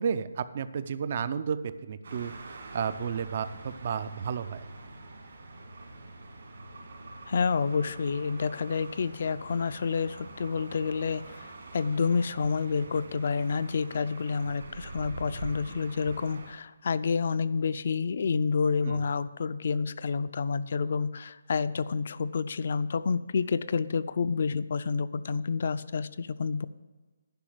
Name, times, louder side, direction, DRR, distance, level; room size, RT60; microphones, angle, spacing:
voice 1, 0.0-4.7 18.8-19.1, right 7 dB, 35° right, 13 dB, 0.4 m, -32 dB
sound 1, 2.0-16.5, right 3 dB, 65° right, 2.4 m, -45 dB
voice 2, 7.3-11.5 11.7-26.7, left 5 dB, 50° left, 15 dB, 0.4 m, -29 dB
10.5 x 5.8 x 7.7 m, 1.3 s
hypercardioid pair, 170°, 0 cm